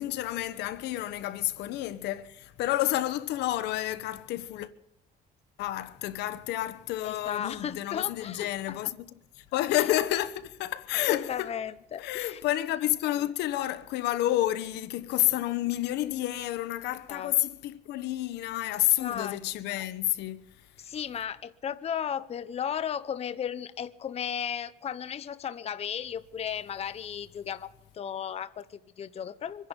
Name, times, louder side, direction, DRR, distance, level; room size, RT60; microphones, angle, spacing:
voice 1, 0.0-4.7 5.6-9.1 9.4-11.5 12.0-20.5, left 14 dB, 85° left, 1.1 m, -30 dB
voice 2, 7.0-8.8 9.7-9.8 11.1-12.4 17.1-17.3 19.0-19.4 20.8-29.7, left 8 dB, 35° left, 0.7 m, -35 dB
25.0 x 10.5 x 5.3 m
cardioid pair, 110°, 17 cm